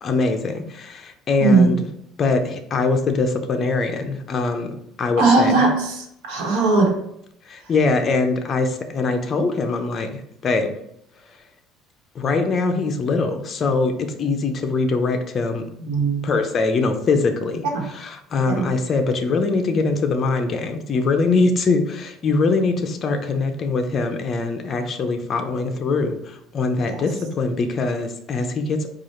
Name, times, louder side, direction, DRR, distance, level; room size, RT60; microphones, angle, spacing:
voice 1, 0.0-1.8 2.2-4.7 5.0-5.7 7.5-10.7 12.2-15.6 16.2-28.9, left 3 dB, 35° left, 6 dB, 0.5 m, -22 dB
voice 2, 1.4-1.7 5.2-6.9 15.8-16.3 17.7-17.8 18.5-18.7 26.9-27.0, right 3 dB, 85° right, 0 dB, 1.2 m, -18 dB
4.7 x 2.4 x 4.2 m, 0.75 s
cardioid pair, 145°, 0 cm